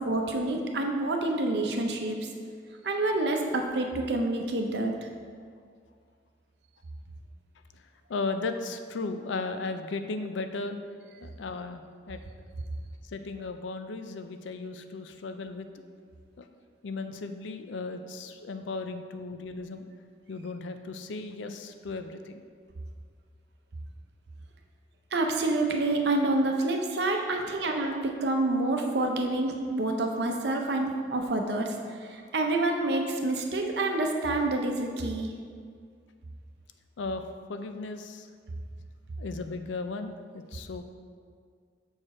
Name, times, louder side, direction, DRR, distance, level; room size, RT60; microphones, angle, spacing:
voice 1, 0.0-2.2 2.8-5.1 25.1-35.3, right 2 dB, 60° right, 3 dB, 0.7 m, -28 dB
voice 2, 8.1-10.8 11.2-12.2 13.1-15.7 16.4-16.5 16.8-19.9 20.3-22.5 37.0-38.3 39.2-40.8, left 3 dB, 75° left, 8 dB, 0.4 m, -36 dB
6.5 x 4.7 x 4.3 m, 2.1 s
head